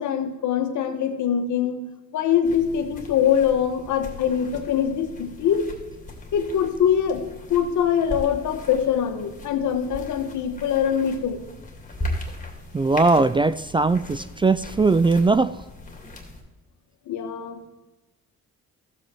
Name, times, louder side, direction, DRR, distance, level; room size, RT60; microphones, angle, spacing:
voice 1, 0.0-1.8 2.1-5.7 6.3-7.2 7.5-11.4 17.1-17.6, left 8 dB, 75° left, 6 dB, 1.5 m, -23 dB
sound 1, 2.4-16.4, left 1 dB, 25° left, 2.7 m, -38 dB
voice 2, 12.7-15.6, right 3 dB, 15° right, 15 dB, 0.3 m, -20 dB
14.5 x 7.8 x 4.4 m, 1.1 s
cardioid pair, 90°, 30 cm